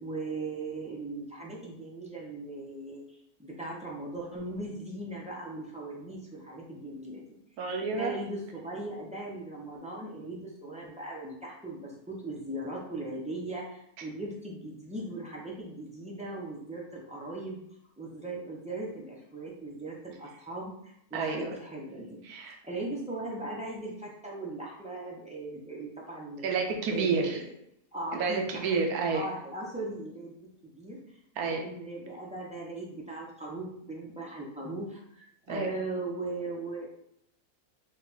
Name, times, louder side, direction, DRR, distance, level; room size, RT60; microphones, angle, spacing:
voice 1, 0.0-7.2 7.9-17.6 18.0-22.2 22.6-26.5 26.9-27.5 27.9-30.3 30.6-31.0 31.4-36.9, right 2 dB, 10° right, -4 dB, 0.4 m, -39 dB
voice 2, 7.6-8.1 21.1-21.6 22.2-22.6 26.4-27.4 28.1-29.3 31.4-31.7 35.5-35.7, right 4 dB, 85° right, 2 dB, 1.1 m, -30 dB
4.0 x 2.3 x 4.0 m, 0.72 s
omnidirectional pair, 1.6 m